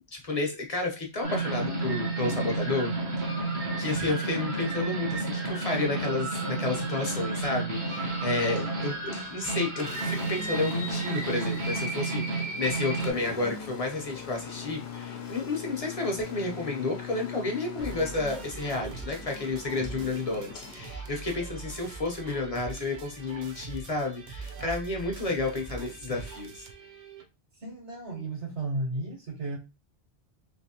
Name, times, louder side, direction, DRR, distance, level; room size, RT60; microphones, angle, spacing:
voice 1, 0.1-26.7, left 3 dB, 35° left, 2 dB, 0.8 m, -31 dB
sound 1, 1.2-13.1, right 3 dB, 70° right, 1.1 m, -31 dB
Engine, 7.7-21.7, left 6 dB, 70° left, 1.0 m, -42 dB
sound 2, 17.8-27.3, right 4 dB, 55° right, 0.6 m, -42 dB
voice 2, 27.6-29.6, right 2 dB, 85° right, -2 dB, 1.7 m, -34 dB
3.3 x 3.0 x 2.8 m, 0.25 s
omnidirectional pair, 1.1 m